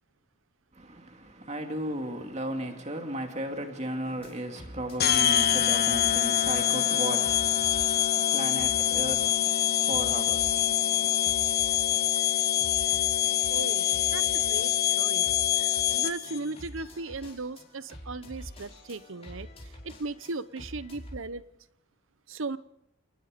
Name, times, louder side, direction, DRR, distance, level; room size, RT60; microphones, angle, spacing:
voice 1, 0.8-11.2, right 1 dB, 30° right, 2.5 m, -36 dB
sound 1, 4.1-21.2, left 1 dB, 25° left, 5.4 m, -47 dB
sound 2, 5.0-16.4, left 10 dB, 45° left, 1.1 m, -25 dB
voice 2, 13.5-19.5 19.8-21.4 22.3-22.6, right 3 dB, 60° right, 0.8 m, -37 dB
29.0 x 19.0 x 5.2 m
head